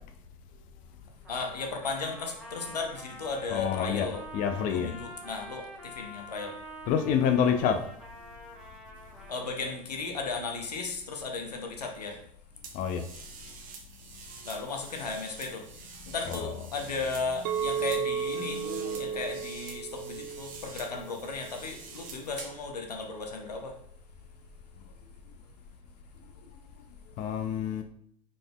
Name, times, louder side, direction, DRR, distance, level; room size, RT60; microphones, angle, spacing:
Trumpet, 1.2-9.8, equal, 5° right, 1.1 m, -46 dB
voice 1, 1.3-4.3 4.7-6.6 9.3-12.2 14.4-23.8, left 4 dB, 85° left, 3 dB, 0.8 m, -35 dB
voice 2, 3.5-4.1 4.3-4.9 6.9-7.8 12.7-13.1 16.2-16.5 27.2-27.8, left 8 dB, 45° left, 6 dB, 0.5 m, -27 dB
sound 1, 12.6-22.7, right 5 dB, 45° right, 0.8 m, -46 dB
Chink clink, 17.4-21.7, right 7 dB, 65° right, 0.5 m, -34 dB
4.9 x 4.0 x 2.3 m, 0.65 s
figure-of-eight pair, 80°, 20 cm